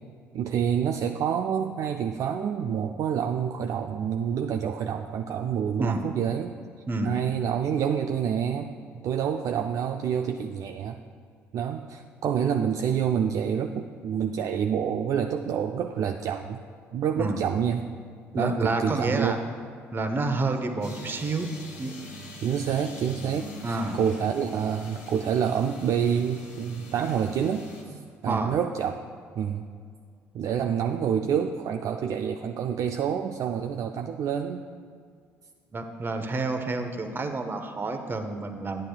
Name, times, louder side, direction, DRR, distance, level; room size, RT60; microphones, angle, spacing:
voice 1, 0.3-6.5 7.0-8.7 9.0-11.0 11.5-16.6 16.9-17.9 18.3-19.4 22.4-29.0 29.4-29.6 30.3-34.6, right 8 dB, 55° right, 5 dB, 0.3 m, -27 dB
voice 2, 18.3-19.4 19.9-21.5 21.8-21.9 23.6-24.0 28.3-28.6 35.7-38.9, right 3 dB, 30° right, 6 dB, 0.8 m, -29 dB
sound 1, 20.8-27.8, left 1 dB, 85° left, 1.2 m, -43 dB
9.7 x 8.8 x 2.3 m, 2.1 s
hypercardioid pair, 55°, 7 cm